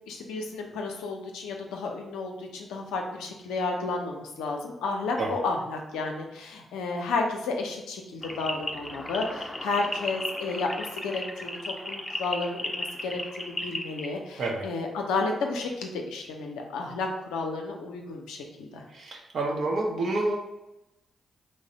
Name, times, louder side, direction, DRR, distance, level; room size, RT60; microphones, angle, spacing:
voice 1, 0.1-18.8, left 3 dB, 85° left, 2 dB, 0.5 m, -32 dB
sound 1, 8.2-14.1, left 1 dB, 25° left, 0.5 m, -35 dB
voice 2, 18.9-20.4, right 2 dB, 65° right, 1 dB, 0.7 m, -28 dB
3.1 x 2.0 x 3.8 m, 0.94 s
hypercardioid pair, 45°, 0 cm